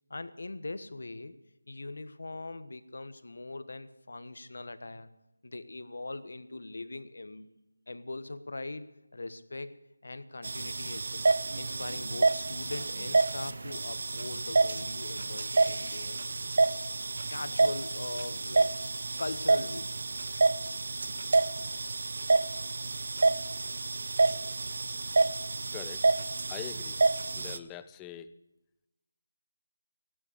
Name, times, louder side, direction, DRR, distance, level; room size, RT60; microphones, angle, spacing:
voice 1, 0.1-1.3 1.7-5.1 5.4-7.5 7.9-9.7 10.0-11.3 11.5-16.2 17.3-18.7 19.2-20.0 21.1-21.2, left 2 dB, 70° left, 12 dB, 1.3 m, -41 dB
sound 1, 10.4-27.6, right 3 dB, 50° right, 0.8 m, -28 dB
voice 2, 25.7-26.1 26.5-27.0 27.4-28.3, left 11 dB, 10° left, 12 dB, 0.5 m, -43 dB
16.5 x 12.5 x 6.6 m, 0.92 s
figure-of-eight pair, 170°, 0 cm